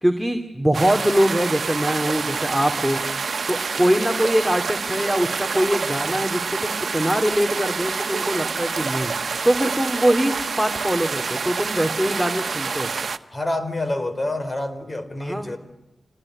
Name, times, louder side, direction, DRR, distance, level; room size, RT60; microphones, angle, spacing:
voice 1, 0.0-12.9 15.2-15.6, equal, ahead, 5 dB, 2.8 m, -23 dB
sound 1, 0.7-13.2, right 5 dB, 70° right, 1.2 m, -27 dB
voice 2, 13.3-15.6, left 1 dB, 35° left, 11 dB, 4.2 m, -27 dB
27.5 x 19.5 x 10.0 m, 0.99 s
cardioid pair, 45°, 0 cm